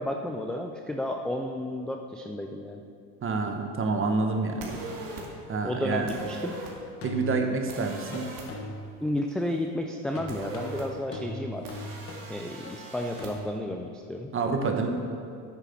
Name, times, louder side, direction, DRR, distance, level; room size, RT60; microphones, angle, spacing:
voice 1, 0.0-2.8 5.6-6.6 9.0-11.7 12.3-14.3, left 1 dB, ahead, 2 dB, 0.4 m, -32 dB
voice 2, 3.2-4.7 5.5-6.1 7.0-8.3 14.3-14.9, right 4 dB, 30° right, 4 dB, 1.2 m, -27 dB
sound 1, 4.6-5.2 6.1-6.7 7.7-8.5 10.3-10.8 11.6-13.3, right 3 dB, 55° right, 2.3 m, -40 dB
sound 2, 5.2-5.3 7.0-7.7 8.1-9.0 10.2-13.5, left 1 dB, 35° left, 1.3 m, -40 dB
9.1 x 6.7 x 5.8 m, 2.3 s
supercardioid pair, 100°, 41 cm